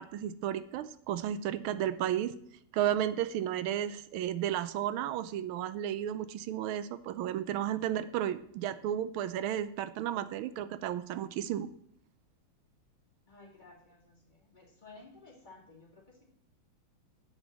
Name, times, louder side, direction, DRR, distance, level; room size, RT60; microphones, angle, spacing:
voice 1, 0.0-2.3 2.7-11.7, right 11 dB, 85° right, 13 dB, 1.4 m, -33 dB
voice 2, 13.3-16.2, left 3 dB, 20° left, -3 dB, 2.4 m, -55 dB
8.2 x 5.4 x 7.3 m, 0.68 s
omnidirectional pair, 2.3 m